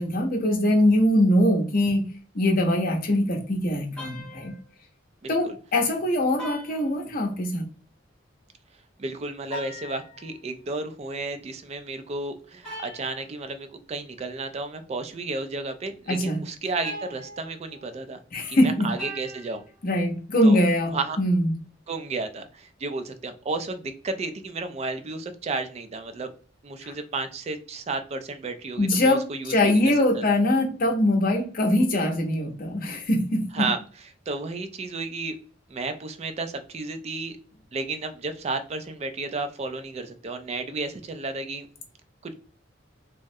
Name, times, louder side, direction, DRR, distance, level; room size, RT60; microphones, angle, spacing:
voice 1, 0.0-2.1 2.3-4.5 5.3-7.6 16.1-16.4 18.3-18.9 19.8-21.5 26.8-26.9 28.8-33.7, left 1 dB, 50° left, 0.7 m, -22 dB
sound 1, 4.0-4.7 6.4-7.6 9.4-10.4 12.6-13.3 16.6-18.0 19.0-19.7, left 1 dB, 5° left, 0.8 m, -41 dB
voice 2, 5.2-5.6 9.0-18.2 18.5-19.6 20.4-20.6 20.9-21.2 21.9-26.3 26.6-29.7 30.1-30.2 33.5-33.8 34.3-35.4 35.7-37.4 37.7-41.7 42.2-42.3, right 3 dB, 35° right, 0.3 m, -32 dB
3.5 x 2.1 x 2.6 m
head